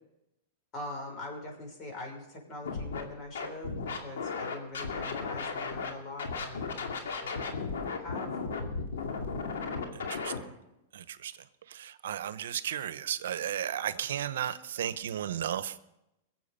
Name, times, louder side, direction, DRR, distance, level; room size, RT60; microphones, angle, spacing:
voice 1, 0.7-7.4 8.0-8.3, left 2 dB, 30° left, 1 dB, 5.8 m, -42 dB
Scratching (performance technique), 2.6-3.0 3.3-5.9 6.2-10.4, left 4 dB, 85° left, 2.3 m, -35 dB
voice 2, 9.9-10.3 10.9-11.3 11.7-15.9, right 10 dB, 80° right, 15 dB, 0.8 m, -34 dB
22.0 x 7.6 x 5.6 m, 0.88 s
hypercardioid pair, 130°, 0 cm